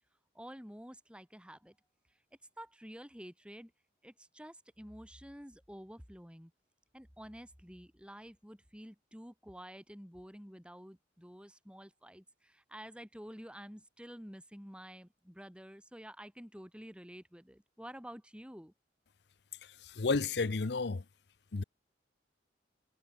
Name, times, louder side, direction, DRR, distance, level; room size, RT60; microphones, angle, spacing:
voice 1, 0.3-1.7 2.6-3.7 4.0-6.5 6.9-18.7, equal, 5° right, 7.9 m, -50 dB
voice 2, 20.0-21.0 21.5-21.6, left 4 dB, 65° left, 0.7 m, -31 dB
head